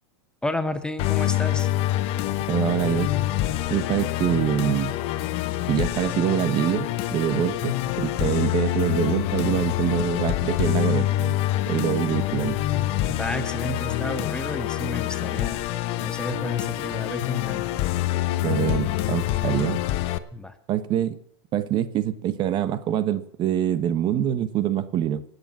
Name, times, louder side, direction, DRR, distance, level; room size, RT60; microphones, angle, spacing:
voice 1, 0.4-1.7 13.0-15.6 16.0-17.7 20.3-20.6, left 1 dB, 5° left, 10 dB, 0.9 m, -31 dB
Musical instrument, 1.0-20.2, left 14 dB, 40° left, 1.0 m, -26 dB
voice 2, 2.5-3.1 3.7-5.0 5.7-11.3 11.7-12.6 18.4-19.8 20.7-21.2 21.5-25.2, right 10 dB, 35° right, 13 dB, 1.1 m, -25 dB
18.5 x 8.1 x 7.3 m, 0.65 s
supercardioid pair, 135°, 14 cm